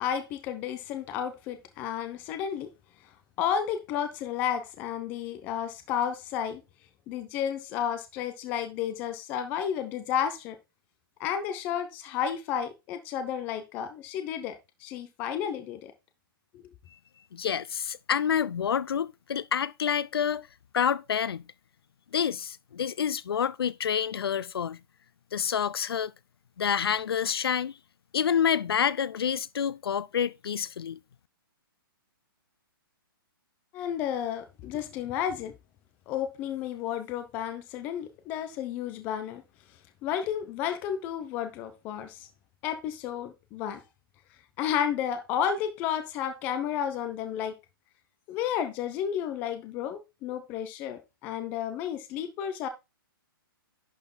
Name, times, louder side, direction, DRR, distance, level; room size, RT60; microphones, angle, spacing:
voice 1, 0.0-2.7 3.4-6.6 7.1-10.6 11.2-15.9 33.7-35.5 36.1-39.4 40.0-42.3 42.6-43.8 44.6-47.6 48.3-52.7, left 9 dB, 15° left, 0.8 m, -32 dB
voice 2, 17.3-20.5 20.7-21.4 22.1-24.8 25.3-26.1 26.6-27.7 28.1-31.0, left 8 dB, 90° left, 0.6 m, -28 dB
11.0 x 4.5 x 3.9 m
hypercardioid pair, 180°, 12 cm